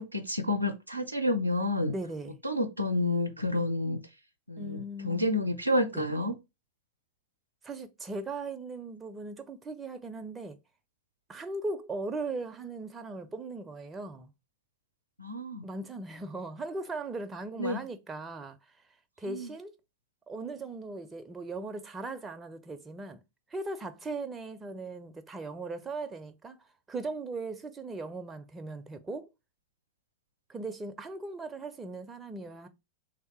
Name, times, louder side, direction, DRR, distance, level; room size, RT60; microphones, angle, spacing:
voice 1, 0.0-1.9 2.4-4.0 4.5-6.4 15.2-15.6 17.6-17.8 19.2-19.5, left 1 dB, 85° right, 0.5 m, -29 dB
voice 2, 1.9-2.4 4.6-5.2 5.9-6.0 7.6-10.6 11.3-14.3 15.6-18.7 19.2-19.7 20.3-23.2 23.5-29.3 30.5-32.7, right 3 dB, 15° right, 0.4 m, -38 dB
3.4 x 2.7 x 4.2 m
figure-of-eight pair, 90°, 0 cm